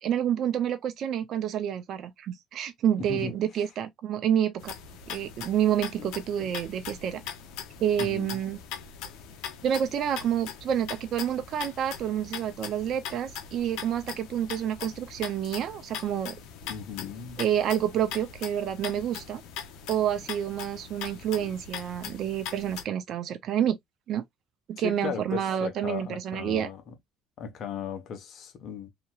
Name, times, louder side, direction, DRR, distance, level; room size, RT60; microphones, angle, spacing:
voice 1, 0.0-4.7 5.1-7.2 7.8-8.6 9.6-16.4 17.4-19.4 19.9-23.8 24.1-24.2 24.7-26.7, right 10 dB, 60° right, 0.5 m, -28 dB
voice 2, 3.0-3.3 8.0-8.4 16.7-17.4 24.8-26.9 27.4-28.9, left 7 dB, 55° left, 1.0 m, -36 dB
sound 1, 4.6-22.8, left 8 dB, 80° left, 0.7 m, -41 dB
2.8 x 2.8 x 2.4 m
cardioid pair, 95°, 0 cm